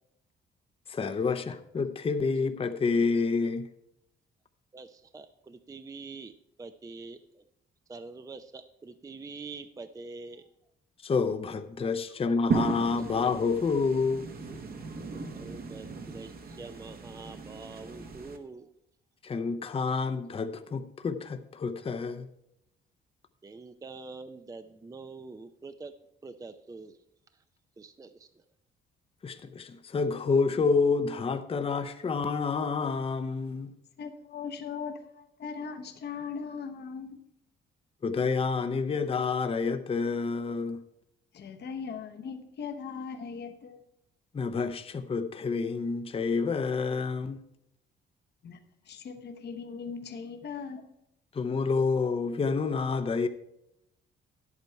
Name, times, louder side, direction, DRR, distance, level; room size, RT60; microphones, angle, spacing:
voice 1, 0.9-3.7 11.0-14.3 19.2-22.3 29.2-33.7 38.0-40.8 44.3-47.4 51.3-53.3, left 4 dB, 30° left, 0.6 m, -28 dB
voice 2, 4.7-7.4 7.9-10.5 12.1-12.2 13.0-13.1 15.4-18.7 23.4-25.9 26.2-27.0 27.3-27.4 27.8-28.3, right 3 dB, 15° right, 0.5 m, -45 dB
sound 1, 12.5-18.4, right 4 dB, 50° right, 1.2 m, -36 dB
voice 3, 34.0-37.2 41.3-43.8 48.4-48.6 48.9-50.9, left 6 dB, 55° left, 1.0 m, -39 dB
10.5 x 8.3 x 4.5 m
cardioid pair, 90°, 20 cm